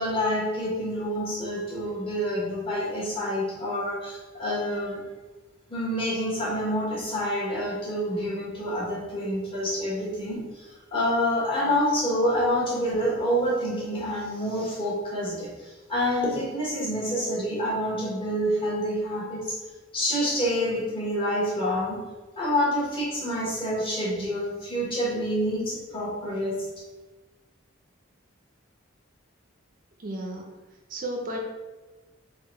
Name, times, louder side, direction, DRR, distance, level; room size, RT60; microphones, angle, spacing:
voice 1, 0.0-5.0 5.7-19.6 19.9-22.0 22.4-26.6, equal, 25° left, -5 dB, 1.0 m, -27 dB
voice 2, 30.0-30.6 30.9-31.4, right 1 dB, 40° right, 1 dB, 0.4 m, -33 dB
3.6 x 2.2 x 4.2 m, 1.2 s
head